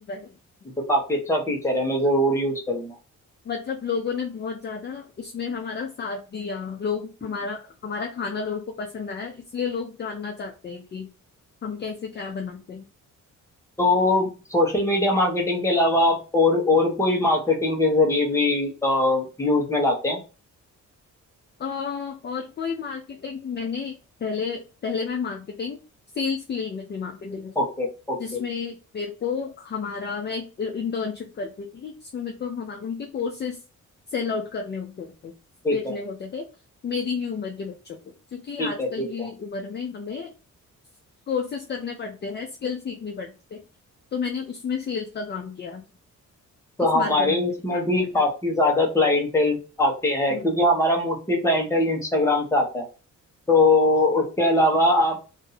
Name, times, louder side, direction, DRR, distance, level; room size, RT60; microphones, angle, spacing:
voice 1, 0.8-2.9 13.8-20.2 27.6-28.4 35.6-35.9 38.6-39.3 46.8-52.8 53.5-55.2, left 2 dB, 10° left, 0 dB, 1.0 m, -22 dB
voice 2, 3.4-11.1 11.6-12.9 21.6-25.8 26.1-27.6 28.2-33.6 34.1-35.3 35.7-36.5 36.8-38.0 38.3-40.3 41.3-43.6 44.1-45.8 46.9-48.2 50.3-50.9, left 5 dB, 35° left, 2 dB, 0.5 m, -31 dB
2.7 x 2.6 x 3.9 m, 0.33 s
cardioid pair, 140°, 31 cm